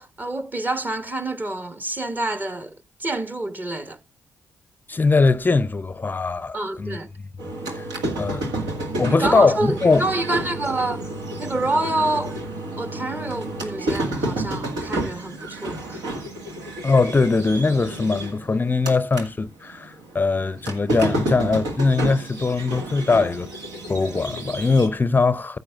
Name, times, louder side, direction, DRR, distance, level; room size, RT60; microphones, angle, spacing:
voice 1, 0.0-4.0 6.5-7.1 9.1-11.1 11.4-12.4 12.8-16.0, right 2 dB, 25° right, 1.4 m, -27 dB
voice 2, 4.9-7.0 7.7-7.9 8.2-8.6 9.0-10.0 16.8-23.5 23.9-25.6, left 4 dB, 25° left, 0.6 m, -21 dB
sound 1, 7.4-19.3 19.6-24.9, right 1 dB, 70° right, 1.9 m, -30 dB
14.5 x 7.9 x 2.4 m
hypercardioid pair, 40°, 7 cm